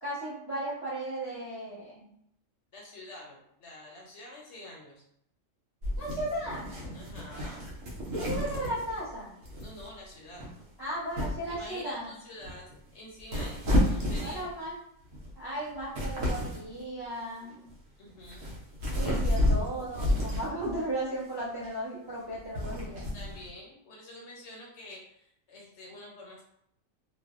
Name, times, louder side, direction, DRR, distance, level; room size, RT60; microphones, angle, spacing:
voice 1, 0.0-2.1 6.0-6.7 8.2-9.3 10.8-12.1 14.2-14.7 15.4-17.6 18.9-23.0, right 1 dB, 25° right, -8 dB, 0.6 m, -35 dB
voice 2, 2.7-5.0 6.9-7.7 9.6-10.4 11.5-14.4 18.0-18.5 23.1-26.4, left 1 dB, 65° left, -2 dB, 0.8 m, -47 dB
sound 1, 5.8-9.1 9.4-9.9 10.3-10.6 11.1-11.6 12.4-12.8 13.2-14.7 15.1-15.3 15.7-16.7 17.5-17.7 18.2-20.8 21.4-21.7 22.3-23.5, left 1 dB, 80° right, 1.0 m, -31 dB
2.6 x 2.1 x 2.3 m, 0.73 s
omnidirectional pair, 1.4 m